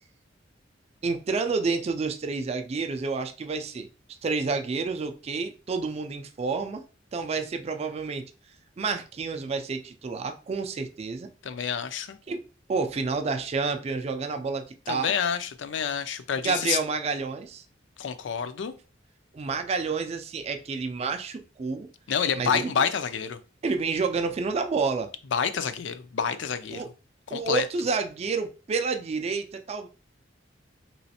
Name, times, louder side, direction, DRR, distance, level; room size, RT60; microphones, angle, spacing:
voice 1, 1.0-3.9 4.2-6.8 7.1-8.3 8.8-11.3 12.3-12.4 12.7-15.1 16.4-17.6 19.3-21.9 22.3-22.7 23.6-25.1 26.7-26.9 27.3-29.9, right 4 dB, 35° right, 0.3 m, -29 dB
voice 2, 11.4-12.2 14.9-16.8 18.0-18.7 22.1-23.4 25.3-26.8 27.3-27.7, left 7 dB, 70° left, 0.4 m, -28 dB
3.1 x 3.0 x 2.8 m
head